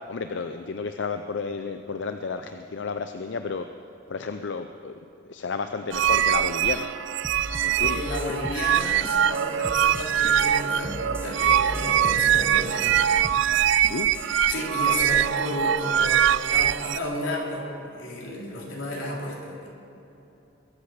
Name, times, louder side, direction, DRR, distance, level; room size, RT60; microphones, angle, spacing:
voice 1, 0.1-3.7 4.1-4.9 5.3-6.9 7.6-8.1 13.8-14.1, left 4 dB, 65° left, 7 dB, 0.6 m, -32 dB
sound 1, 5.9-17.0, right 10 dB, 70° right, 0.4 m, -23 dB
sound 2, 7.2-14.3, right 1 dB, 10° right, 0.8 m, -38 dB
voice 2, 7.8-13.1 14.1-19.7, left 1 dB, 90° left, -3 dB, 3.7 m, -32 dB
22.5 x 8.4 x 6.7 m, 3.0 s
head